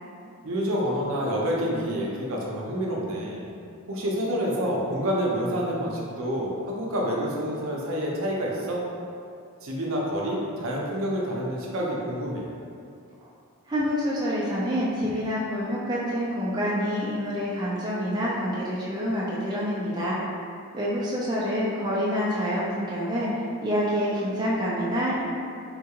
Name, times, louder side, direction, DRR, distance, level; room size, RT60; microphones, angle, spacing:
voice 1, 0.4-3.4 3.9-8.8 9.6-12.5, equal, 70° right, -3 dB, 0.5 m, -28 dB
voice 2, 13.7-20.2 20.7-23.3 23.6-25.2, equal, 20° right, -7 dB, 0.4 m, -27 dB
3.7 x 2.3 x 2.8 m, 2.5 s
head